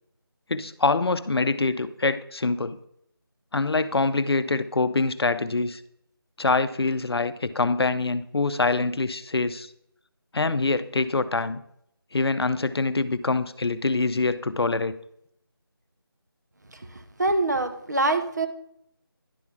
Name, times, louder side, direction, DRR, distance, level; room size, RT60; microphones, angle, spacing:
voice 1, 0.5-2.8 3.5-5.8 6.4-9.7 10.3-11.6 12.1-14.9, left 3 dB, 80° left, 13 dB, 0.6 m, -25 dB
voice 2, 16.7-18.5, right 2 dB, 45° right, 8 dB, 0.8 m, -25 dB
10.5 x 3.7 x 5.9 m, 0.74 s
figure-of-eight pair, 180°, 13 cm